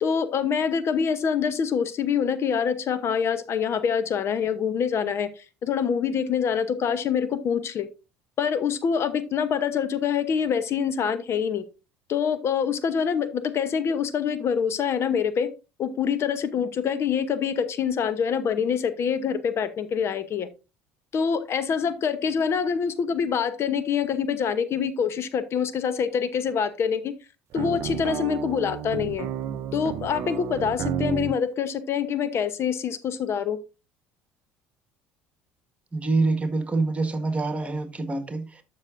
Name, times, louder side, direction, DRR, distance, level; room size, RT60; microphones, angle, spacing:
voice 1, 0.0-7.9 8.4-11.6 12.1-15.5 15.8-20.5 21.1-27.1 27.5-29.3 29.7-33.6, left 7 dB, 50° left, 0.9 m, -25 dB
sound 1, 27.5-31.4, right 9 dB, 55° right, 0.6 m, -31 dB
voice 2, 35.9-38.6, right 3 dB, 25° right, 1.6 m, -26 dB
12.5 x 6.0 x 2.6 m
hypercardioid pair, 65°, 6 cm